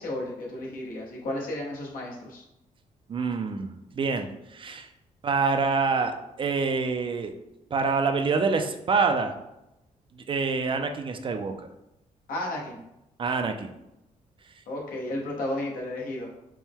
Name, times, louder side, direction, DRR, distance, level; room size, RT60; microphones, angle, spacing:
voice 1, 0.0-2.4 12.3-12.8 14.7-16.3, left 1 dB, 80° left, -2 dB, 1.0 m, -33 dB
voice 2, 3.1-4.9 5.2-7.3 7.7-9.3 10.3-11.7 13.2-13.7, right 4 dB, 35° right, 6 dB, 0.4 m, -26 dB
4.4 x 2.1 x 3.6 m, 0.88 s
cardioid pair, 105°, 14 cm